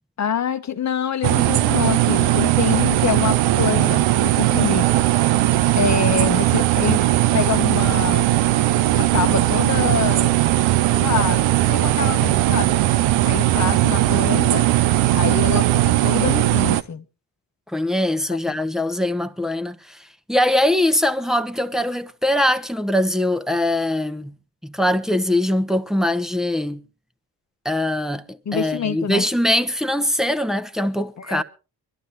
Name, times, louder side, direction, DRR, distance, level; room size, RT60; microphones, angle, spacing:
voice 1, 0.2-4.9 5.8-7.0 7.3-8.3 8.9-10.3 10.9-12.7 13.2-14.7 15.1-17.0 18.3-18.4 28.5-29.3 31.2-31.4, left 7 dB, 35° left, 1.0 m, -25 dB
sound 1, 1.2-16.8, right 14 dB, 85° right, 0.6 m, -18 dB
voice 2, 17.7-24.3 24.6-26.8 27.6-31.4, left 1 dB, ahead, 0.9 m, -22 dB
24.0 x 11.5 x 2.9 m
hypercardioid pair, 45°, 45 cm